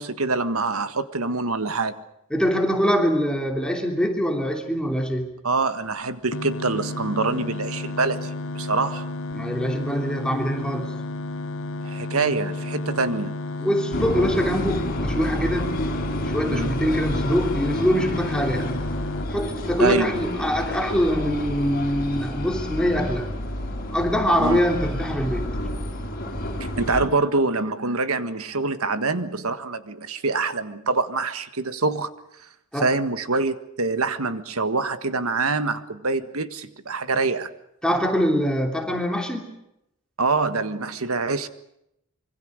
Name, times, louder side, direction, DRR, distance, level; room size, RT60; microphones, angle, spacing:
voice 1, 0.0-2.0 5.4-9.1 11.8-13.3 16.5-16.7 19.8-20.1 24.4-24.6 26.8-32.1 32.8-37.5 40.2-41.5, right 3 dB, 85° right, 11 dB, 1.6 m, -25 dB
voice 2, 2.3-5.3 9.3-10.9 13.6-15.8 16.2-18.8 19.3-23.3 23.9-25.5 32.7-32.9 37.8-39.5, equal, 5° left, 2 dB, 3.0 m, -24 dB
sound 1, 6.3-19.3, left 2 dB, 65° left, 1.1 m, -32 dB
sound 2, 13.9-27.1, left 1 dB, 45° left, 5.7 m, -29 dB
25.5 x 24.5 x 6.5 m, 0.82 s
head